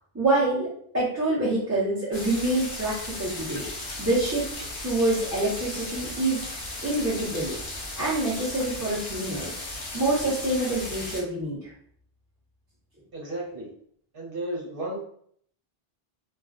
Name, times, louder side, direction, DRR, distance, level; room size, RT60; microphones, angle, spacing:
voice 1, 0.1-0.7 0.9-3.6 4.0-4.5 4.8-6.4 6.8-7.6 8.0-9.5 9.9-11.6, right 2 dB, 20° right, -10 dB, 0.6 m, -26 dB
sound 1, 2.1-11.2, left 2 dB, 55° left, 0.8 m, -36 dB
voice 2, 13.1-13.7 14.1-15.0, right 1 dB, 65° right, -3 dB, 1.0 m, -33 dB
2.4 x 2.1 x 2.4 m, 0.63 s
omnidirectional pair, 1.1 m